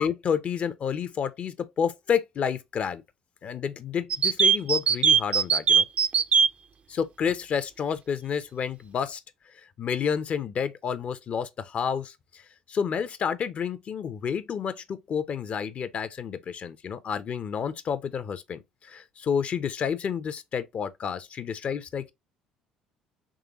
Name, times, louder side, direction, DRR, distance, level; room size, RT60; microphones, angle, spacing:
voice 1, 0.0-3.0 3.4-5.9 6.9-9.2 9.5-12.4 12.7-22.1, left 7 dB, 50° left, 0.5 m, -30 dB
sound 1, 4.1-6.5, right 6 dB, 45° right, 0.4 m, -19 dB
3.7 x 3.1 x 2.9 m
hypercardioid pair, 60°, 3 cm